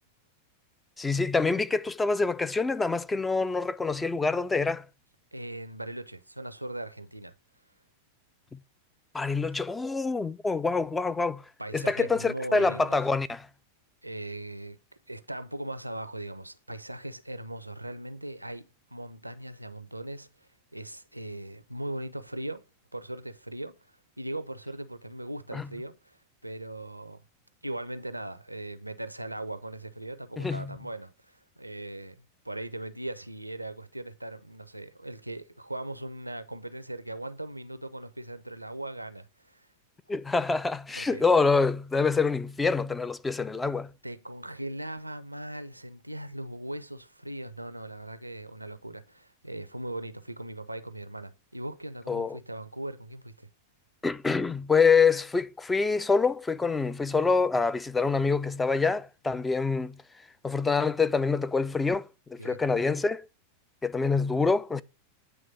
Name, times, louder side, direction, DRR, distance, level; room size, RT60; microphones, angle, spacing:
voice 1, 1.0-4.9 8.5-8.6 9.1-11.4 11.7-13.5 25.5-25.7 30.4-30.7 40.1-43.9 52.1-52.4 54.0-60.0 60.4-63.3 63.8-64.8, left 4 dB, 10° left, 0.4 m, -26 dB
voice 2, 5.3-7.3 11.6-13.0 14.0-14.8 15.1-20.3 20.7-22.7 22.9-27.2 27.6-32.2 32.4-39.7 40.9-41.3 44.0-53.5 62.4-62.6, right 1 dB, 85° right, 0.5 m, -39 dB
9.1 x 3.2 x 5.4 m
figure-of-eight pair, 90°, 0 cm